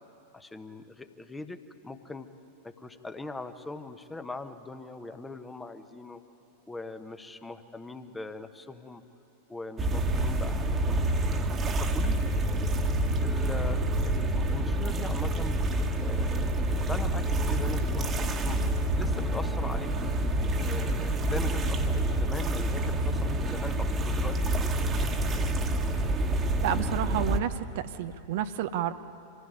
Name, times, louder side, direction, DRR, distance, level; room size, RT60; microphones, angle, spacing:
voice 1, 0.3-2.3 2.6-6.2 6.7-9.0 9.5-11.0 11.8-12.4 13.2-15.6 16.0-18.1 18.4-20.2 20.7-25.2, left 3 dB, 10° left, 9 dB, 1.1 m, -41 dB
sound 1, 9.8-27.4, right 1 dB, 25° right, 1.5 m, -27 dB
voice 2, 26.6-28.9, right 10 dB, 50° right, 10 dB, 0.7 m, -30 dB
25.5 x 16.0 x 9.5 m, 2.9 s
figure-of-eight pair, 90°, 0 cm